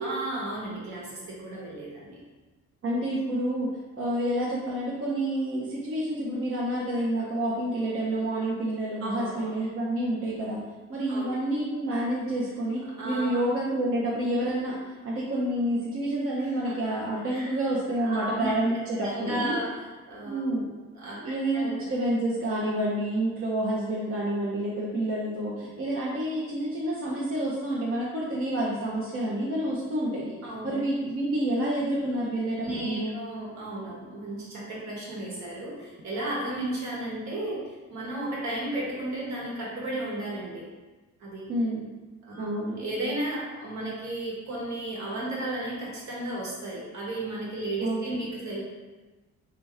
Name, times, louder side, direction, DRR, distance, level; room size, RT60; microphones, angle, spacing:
voice 1, 0.0-2.2 9.0-9.5 11.1-11.4 13.0-13.4 16.4-16.7 17.3-17.5 18.0-20.5 20.9-21.9 30.4-30.8 32.6-40.7 41.2-41.5 42.2-42.5 42.8-48.6, right 1 dB, 65° right, -4 dB, 1.4 m, -34 dB
voice 2, 2.8-3.7 4.0-10.6 10.9-19.6 20.2-20.7 21.2-30.3 30.6-33.2 41.5-41.8 42.4-42.8 47.8-48.2, right 1 dB, 45° right, -6 dB, 0.8 m, -28 dB
3.5 x 2.9 x 3.3 m, 1.2 s
cardioid pair, 90°, 30 cm